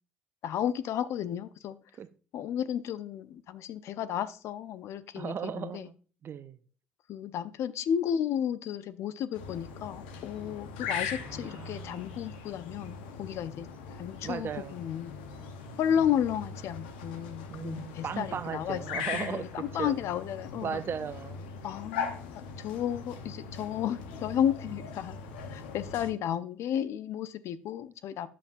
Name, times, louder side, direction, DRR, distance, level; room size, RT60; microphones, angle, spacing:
voice 1, 0.4-1.8 2.3-5.9 7.1-13.7 14.0-15.1 15.8-20.8 21.6-25.2 25.5-28.3, left 9 dB, 60° left, 15 dB, 0.6 m, -33 dB
voice 2, 5.2-5.9 6.2-6.6 11.2-12.1 14.2-14.8 17.5-20.0 20.6-21.5, right 7 dB, 45° right, 14 dB, 0.7 m, -37 dB
sound 1, 9.3-26.1, left 5 dB, 80° left, 0.9 m, -40 dB
10.0 x 7.3 x 2.6 m, 0.37 s
hypercardioid pair, 55°, 5 cm